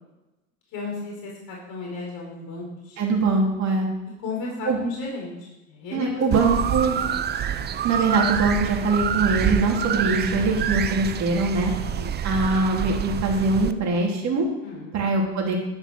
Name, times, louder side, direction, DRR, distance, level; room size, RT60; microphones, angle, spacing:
voice 1, 0.7-3.0 4.2-6.2 7.7-7.8 11.8-12.1 14.6-15.0, left 3 dB, 55° left, -2 dB, 4.5 m, -34 dB
voice 2, 3.0-3.9 4.7-4.8 5.9-7.0 7.8-11.7 12.2-14.5 14.9-15.6, right 3 dB, 40° right, 0 dB, 3.4 m, -22 dB
sound 1, 6.3-13.7, right 8 dB, 25° right, 0.6 m, -27 dB
12.0 x 6.0 x 6.4 m, 1.0 s
hypercardioid pair, 95°, 41 cm